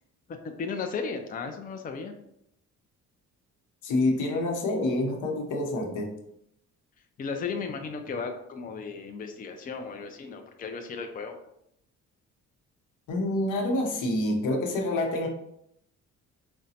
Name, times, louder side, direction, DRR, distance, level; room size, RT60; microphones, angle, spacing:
voice 1, 0.4-2.1 7.2-11.4, left 5 dB, 30° left, 5 dB, 0.4 m, -35 dB
voice 2, 3.8-6.1 13.1-15.3, left 1 dB, 85° left, 2 dB, 0.8 m, -27 dB
4.8 x 2.2 x 2.8 m, 0.76 s
cardioid pair, 90°, 30 cm